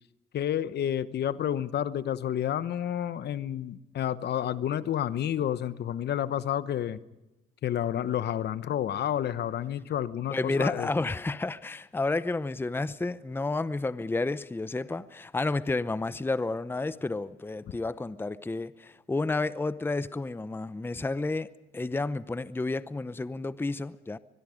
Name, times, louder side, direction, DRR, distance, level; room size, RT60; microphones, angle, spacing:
voice 1, 0.3-7.0 7.6-10.9, left 10 dB, 60° left, 1.0 m, -30 dB
voice 2, 10.3-24.2, left 3 dB, 10° left, 0.7 m, -31 dB
23.5 x 22.0 x 5.1 m
supercardioid pair, 75°, 20 cm